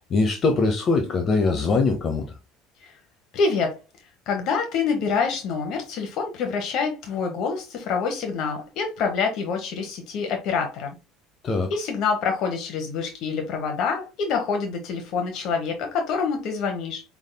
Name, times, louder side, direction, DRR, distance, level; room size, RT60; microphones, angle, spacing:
voice 1, 0.1-2.4 11.4-11.7, left 3 dB, 35° left, 0.7 m, -22 dB
voice 2, 3.3-3.8 4.3-10.9 11.7-17.0, left 5 dB, 55° left, 1.0 m, -26 dB
5.3 x 3.5 x 2.2 m
cardioid pair, 140°, 0 cm